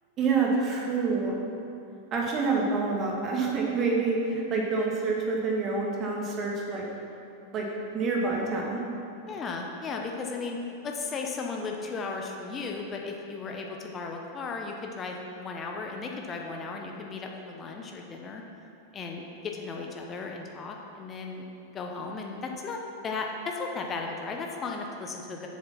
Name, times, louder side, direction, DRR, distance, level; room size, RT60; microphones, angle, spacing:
voice 1, 0.2-1.4 2.1-6.9 7.5-7.7 7.9-8.8, right 4 dB, 30° right, -1 dB, 1.8 m, -27 dB
voice 2, 9.3-10.6 10.8-18.4 18.9-21.5 21.7-25.5, left 4 dB, 25° left, 1 dB, 1.0 m, -35 dB
7.7 x 6.8 x 5.8 m, 2.6 s
figure-of-eight pair, 90°, 0 cm